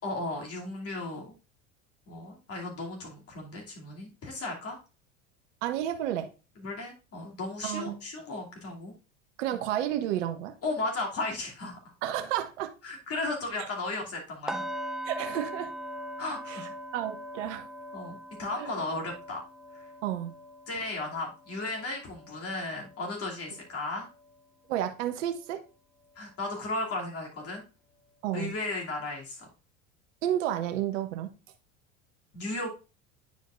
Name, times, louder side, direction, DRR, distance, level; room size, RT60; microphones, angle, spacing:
voice 1, 0.0-1.3 2.1-4.8 6.6-8.9 9.5-9.6 10.6-11.8 12.8-14.6 16.2-16.7 17.9-19.4 19.7-19.8 20.7-24.1 26.2-27.6 28.3-29.5 32.3-32.7, left 2 dB, 40° left, 2.7 m, -35 dB
voice 2, 5.6-6.3 7.6-8.0 9.4-10.5 12.0-12.7 15.0-15.7 16.5-16.6 16.9-17.7 18.6-18.7 20.0-20.3 24.7-25.6 28.2-28.5 30.2-31.3, right 11 dB, 70° right, 1.0 m, -31 dB
sound 1, 14.5-24.4 24.7-25.0 25.5-25.6, equal, ahead, 0.5 m, -42 dB
9.4 x 5.0 x 2.5 m
hypercardioid pair, 80°, 37 cm